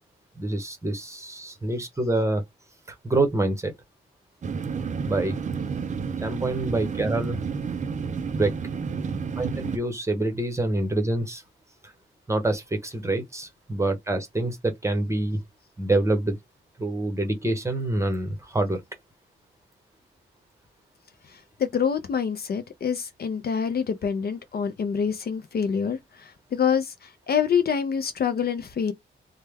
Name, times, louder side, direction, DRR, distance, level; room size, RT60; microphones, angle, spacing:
voice 1, 0.4-2.4 3.0-3.7 5.0-5.4 6.2-7.4 8.3-8.6 9.4-11.4 11.8-11.9 12.3-15.4 15.8-16.4 16.8-18.8, right 2 dB, 15° right, 0.8 m, -26 dB
sound 1, 4.4-9.8, right 5 dB, 35° right, 0.4 m, -30 dB
voice 2, 21.3-28.9, left 7 dB, 50° left, 0.5 m, -26 dB
3.3 x 2.1 x 3.3 m
wide cardioid pair, 170°, 21 cm